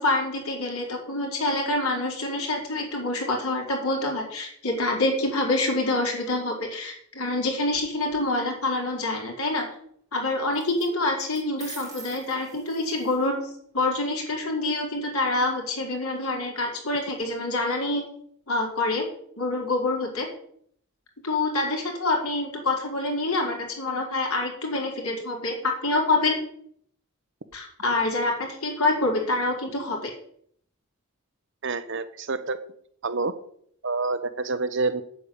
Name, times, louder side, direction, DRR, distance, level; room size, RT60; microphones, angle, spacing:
voice 1, 0.0-9.6 10.1-13.4 13.7-18.0 18.5-19.1 19.4-20.3 21.2-26.4 27.5-30.1, left 2 dB, 85° left, 0 dB, 4.8 m, -26 dB
sound 1, 7.7-8.2 10.5-10.9 11.2-13.2, right 4 dB, 15° right, 4.7 m, -44 dB
voice 2, 31.6-32.6 33.0-33.4 33.8-35.0, right 3 dB, 55° right, 12 dB, 0.9 m, -27 dB
8.8 x 8.5 x 8.7 m, 0.65 s
head